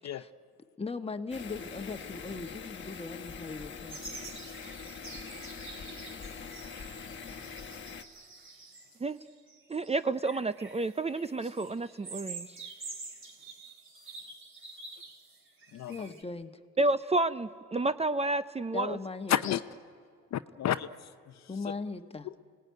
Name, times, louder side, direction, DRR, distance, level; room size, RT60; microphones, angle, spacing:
voice 1, 0.8-4.1 15.9-16.6 18.7-19.3 21.5-22.3, left 3 dB, 20° left, 7 dB, 1.3 m, -39 dB
sound 1, 1.3-8.0, left 6 dB, 40° left, 1.3 m, -43 dB
sound 2, 3.9-16.2, right 3 dB, 45° right, 3.4 m, -47 dB
voice 2, 9.7-12.5 16.8-19.0, right 2 dB, 20° right, 13 dB, 0.5 m, -30 dB
voice 3, 15.7-16.1 19.3-19.6 20.3-21.5 22.2-22.4, left 11 dB, 60° left, 12 dB, 0.7 m, -32 dB
27.5 x 18.5 x 9.4 m, 2.1 s
cardioid pair, 90°, 30 cm